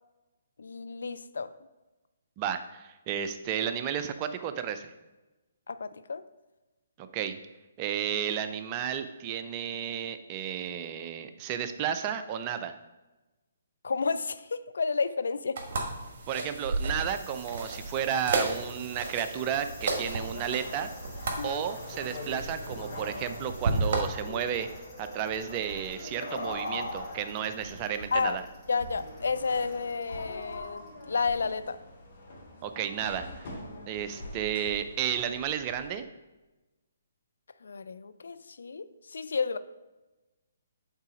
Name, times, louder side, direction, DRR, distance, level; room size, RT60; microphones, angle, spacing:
voice 1, 0.6-1.5 5.7-6.2 13.8-15.6 21.4-21.6 28.1-28.4 28.7-31.8 37.6-39.6, left 5 dB, 65° left, 12 dB, 0.4 m, -31 dB
voice 2, 2.4-4.9 7.0-7.4 7.8-12.7 16.3-20.9 21.4-24.7 25.0-28.4 32.6-33.5 33.9-36.1, right 9 dB, 30° right, 9 dB, 0.5 m, -32 dB
sound 1, 15.6-24.0, right 3 dB, 45° right, 1.4 m, -33 dB
sound 2, 17.0-31.1 31.4-31.5, left 2 dB, 15° left, 2.5 m, -53 dB
sound 3, 19.4-35.9, left 1 dB, 45° left, 2.3 m, -42 dB
8.1 x 3.9 x 5.0 m, 1.1 s
figure-of-eight pair, 135°, 0 cm